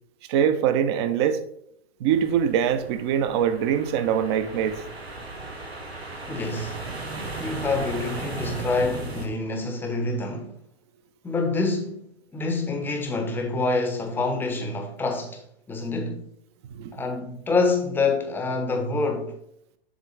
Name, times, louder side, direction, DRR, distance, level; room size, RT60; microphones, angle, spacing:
voice 1, 0.3-1.4 2.0-4.8 16.7-17.0, right 8 dB, 25° right, 0.5 m, -23 dB
sound 1, 2.1-9.3, right 2 dB, 85° right, 1.5 m, -36 dB
voice 2, 6.3-6.8 7.4-10.5 11.2-16.2 16.9-19.4, left 3 dB, 5° left, 0.7 m, -27 dB
7.2 x 3.7 x 4.9 m
figure-of-eight pair, 115°, 31 cm